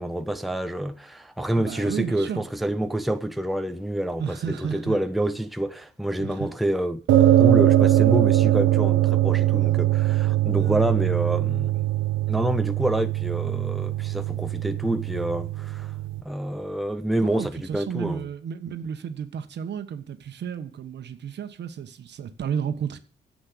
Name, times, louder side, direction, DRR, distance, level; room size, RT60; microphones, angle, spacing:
voice 1, 0.0-11.8 12.3-15.9 16.2-18.3, right 1 dB, ahead, 1.0 m, -27 dB
voice 2, 1.6-2.5 4.2-5.0 6.2-6.5 10.6-10.9 17.2-23.0, right 8 dB, 60° right, 1.5 m, -32 dB
sound 1, 7.1-16.2, right 13 dB, 90° right, 1.0 m, -21 dB
10.0 x 7.9 x 8.6 m
cardioid pair, 90°, 20 cm